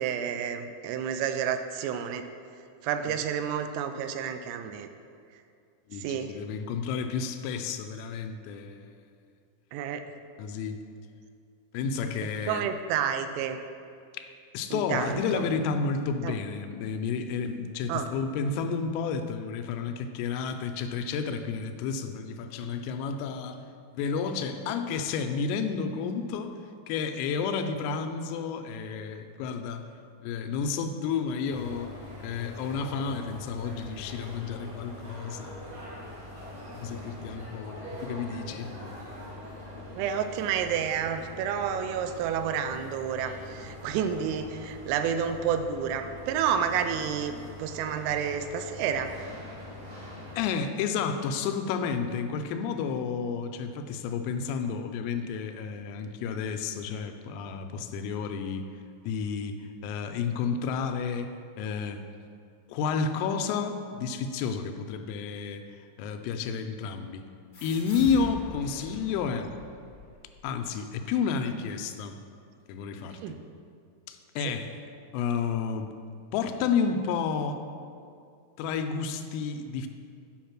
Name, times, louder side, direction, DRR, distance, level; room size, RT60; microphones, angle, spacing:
voice 1, 0.0-2.2 2.8-4.9 5.9-6.4 9.7-10.0 12.0-12.1 12.5-13.6 14.7-15.4 16.2-16.4 17.9-18.1 40.0-49.1 73.1-73.4 74.4-74.5, right 8 dB, 85° right, 8 dB, 3.1 m, -30 dB
voice 2, 5.9-8.9 10.4-10.8 11.7-12.7 14.1-14.3 14.5-23.6 23.9-26.5 26.9-29.8 30.2-31.9 32.2-35.7 36.7-38.7 50.4-58.7 59.0-62.0 62.7-67.3 67.6-69.5 70.4-72.2 72.7-73.4 74.1-74.8 75.1-75.9 76.3-77.6 78.6-79.9, left 6 dB, 85° left, 7 dB, 3.2 m, -31 dB
sound 1, 31.5-50.5, left 1 dB, 45° right, 1.7 m, -43 dB
sound 2, 67.5-70.7, left 2 dB, 40° left, 1.2 m, -44 dB
8.6 x 5.4 x 5.9 m, 2.3 s
omnidirectional pair, 5.8 m